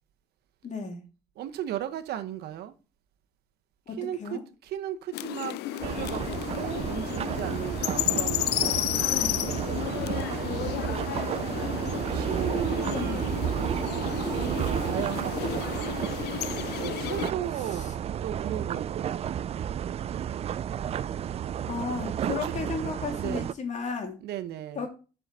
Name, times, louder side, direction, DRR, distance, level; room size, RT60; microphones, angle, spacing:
voice 1, 0.6-1.0 3.9-4.4 9.1-9.5 12.9-13.2 17.6-17.9 20.9-21.1 21.7-24.2 24.8-24.9, left 5 dB, 45° left, 2.5 m, -34 dB
voice 2, 1.4-2.7 4.0-6.3 6.5-8.9 12.0-13.3 14.1-15.7 16.8-19.0 22.2-22.5 23.1-23.5 24.2-24.9, right 11 dB, 75° right, 1.0 m, -36 dB
sound 1, 5.1-17.3, left 16 dB, 80° left, 0.5 m, -32 dB
sound 2, 5.8-23.5, right 9 dB, 40° right, 0.4 m, -32 dB
7.3 x 4.9 x 6.7 m
cardioid pair, 110°, 17 cm